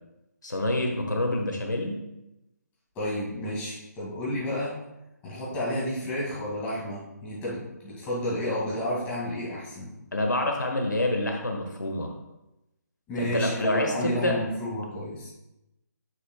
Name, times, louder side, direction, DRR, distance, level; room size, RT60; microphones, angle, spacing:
voice 1, 0.4-2.0 10.1-12.1 13.2-14.4, left 1 dB, 85° left, 2 dB, 1.4 m, -27 dB
voice 2, 3.0-4.8 5.2-9.9 13.1-15.3, equal, 15° left, -7 dB, 2.2 m, -31 dB
8.9 x 6.8 x 2.3 m, 0.92 s
figure-of-eight pair, 150°, 10 cm